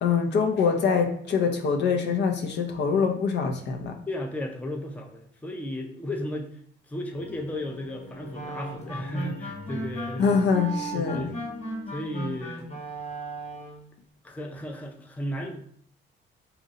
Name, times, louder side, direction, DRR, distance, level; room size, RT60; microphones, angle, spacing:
voice 1, 0.0-4.0 10.2-11.3, left 5 dB, 60° left, 5 dB, 0.5 m, -24 dB
voice 2, 4.1-6.6 6.9-10.4 10.9-11.3 11.9-12.7 14.2-15.6, left 1 dB, 5° left, 3 dB, 0.4 m, -34 dB
sound 1, 7.1-12.4, left 3 dB, 80° left, 0.9 m, -45 dB
sound 2, 8.3-13.9, right 1 dB, 35° left, 1.0 m, -36 dB
2.8 x 2.5 x 4.0 m, 0.62 s
cardioid pair, 90°, 20 cm